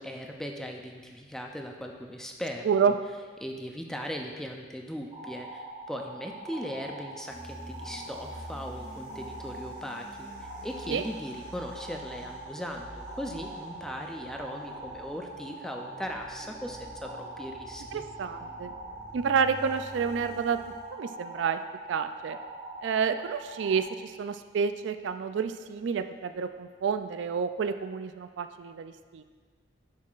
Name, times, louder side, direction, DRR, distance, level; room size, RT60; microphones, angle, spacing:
voice 1, 0.0-3.0 3.4-18.0, equal, 5° left, 2 dB, 0.4 m, -39 dB
voice 2, 2.6-3.0 10.9-11.0 17.9-18.7 19.1-21.6 21.9-22.4 22.8-29.2, right 6 dB, 85° right, 10 dB, 0.3 m, -29 dB
sound 1, 5.1-23.8, right 2 dB, 25° right, 1.4 m, -43 dB
sound 2, 7.3-20.9, left 1 dB, 75° left, 1.8 m, -48 dB
10.5 x 5.5 x 2.4 m, 1.5 s
head